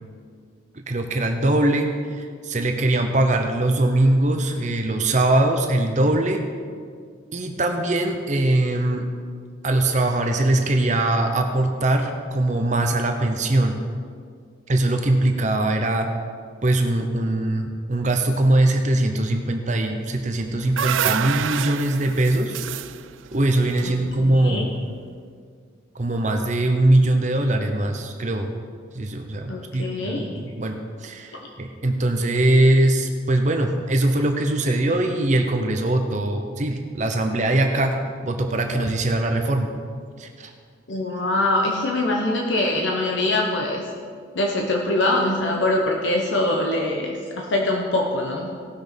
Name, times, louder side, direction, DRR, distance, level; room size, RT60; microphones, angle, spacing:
voice 1, 0.7-6.4 7.3-9.1 9.6-13.8 14.7-16.1 16.6-22.6 23.3-24.7 25.9-28.5 28.9-37.9 38.2-39.7 40.2-40.5, right 1 dB, 40° right, 4 dB, 0.8 m, -21 dB
sound 1, 20.3-24.5, right 9 dB, 80° right, 0.4 m, -28 dB
voice 2, 23.8-24.7 29.5-30.3 40.9-43.8 44.3-48.5, left 1 dB, 70° left, 0 dB, 1.1 m, -23 dB
17.5 x 6.2 x 5.2 m, 2.1 s
head